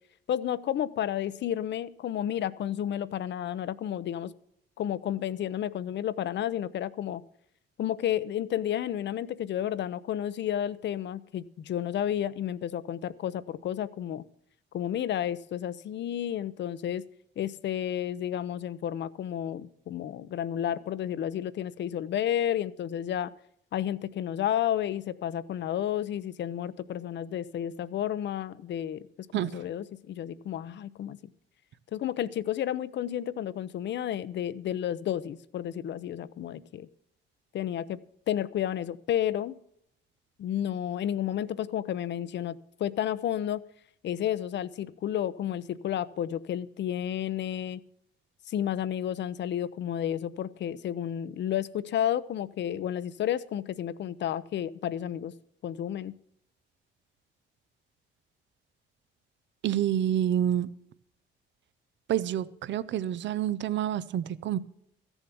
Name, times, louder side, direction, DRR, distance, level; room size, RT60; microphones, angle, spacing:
voice 1, 0.3-4.3 4.8-7.2 7.8-14.2 14.7-17.0 17.4-23.3 23.7-29.1 29.3-31.2 31.9-36.9 37.5-38.0 38.3-39.6 40.4-43.6 44.0-47.8 48.5-55.3 55.6-56.1, left 10 dB, 65° left, 0.7 m, -31 dB
voice 2, 29.3-29.6 59.6-60.7 62.1-64.6, right 11 dB, 65° right, 0.6 m, -28 dB
14.5 x 7.2 x 7.0 m
cardioid pair, 90°, 20 cm